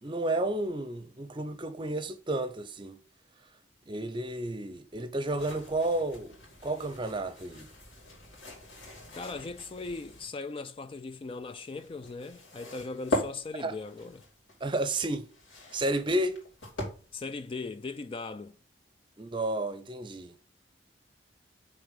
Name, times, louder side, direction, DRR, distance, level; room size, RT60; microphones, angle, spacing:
voice 1, 0.0-3.0 3.9-6.4 6.6-7.7 13.6-13.8 14.6-15.3 15.7-16.4 19.2-20.3, right 1 dB, 25° right, 0.6 m, -31 dB
sound 1, 5.4-10.3 11.3-17.3, left 1 dB, 80° left, 3.1 m, -41 dB
voice 2, 9.2-14.2 17.1-18.6, left 3 dB, 30° left, 0.3 m, -39 dB
6.4 x 3.8 x 5.4 m
head